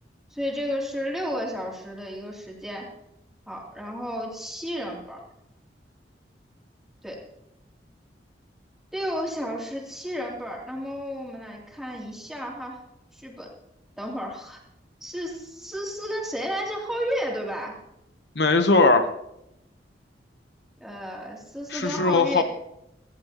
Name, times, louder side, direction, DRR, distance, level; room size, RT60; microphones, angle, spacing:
voice 1, 0.3-2.9 3.5-5.2 7.0-7.2 8.9-12.8 13.1-13.5 14.0-14.6 15.0-17.8 20.8-22.4, equal, ahead, -2 dB, 2.9 m, -32 dB
voice 2, 18.4-19.1 21.7-22.4, left 3 dB, 70° left, 8 dB, 1.0 m, -19 dB
18.0 x 15.0 x 2.9 m, 0.83 s
head